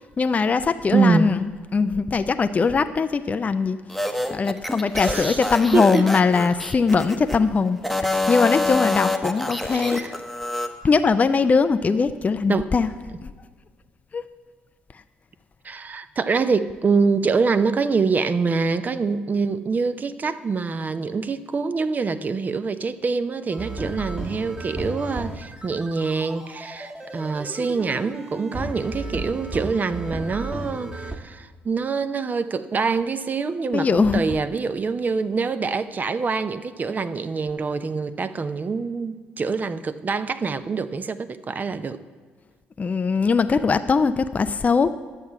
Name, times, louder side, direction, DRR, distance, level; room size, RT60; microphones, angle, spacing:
voice 1, 0.2-3.8 4.3-10.0 10.8-12.9 13.2-13.3 14.1-14.2 33.7-34.2 42.8-44.9, left 4 dB, 30° left, 10 dB, 0.4 m, -21 dB
voice 2, 0.9-1.3 5.0-5.4 5.7-6.1 9.7-10.1 12.5-12.7 15.6-42.0, right 4 dB, 35° right, 12 dB, 0.6 m, -25 dB
sound 1, 3.9-7.4 7.8-10.7, left 2 dB, ahead, 0.9 m, -26 dB
sound 2, 23.5-31.2, right 1 dB, 20° right, 1.3 m, -34 dB
10.5 x 7.2 x 5.9 m, 1.5 s
hypercardioid pair, 50°, 5 cm